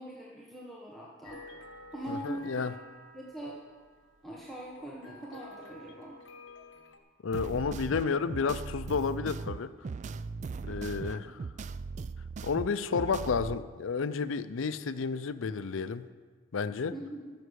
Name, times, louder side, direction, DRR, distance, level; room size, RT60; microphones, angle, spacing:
voice 1, 0.0-1.4 1.9-2.7 3.1-3.6 4.2-6.2 16.9-17.3, right 1 dB, ahead, -5 dB, 1.2 m, -42 dB
sound 1, 1.2-7.0, left 2 dB, 70° left, 1.2 m, -51 dB
voice 2, 2.1-2.7 7.2-9.7 10.7-11.4 12.4-16.1 16.5-16.9, left 5 dB, 85° left, 14 dB, 0.5 m, -31 dB
sound 2, 7.3-13.6, right 4 dB, 35° right, 0.3 m, -39 dB
14.5 x 6.8 x 6.4 m, 1.5 s
head